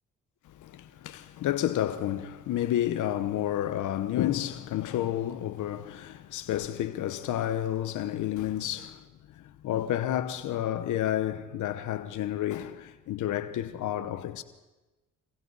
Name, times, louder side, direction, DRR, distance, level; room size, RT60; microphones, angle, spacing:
voice 1, 0.4-14.4, left 12 dB, 80° left, 1.1 m, -30 dB
29.5 x 26.0 x 4.1 m
cardioid pair, 90°, 30 cm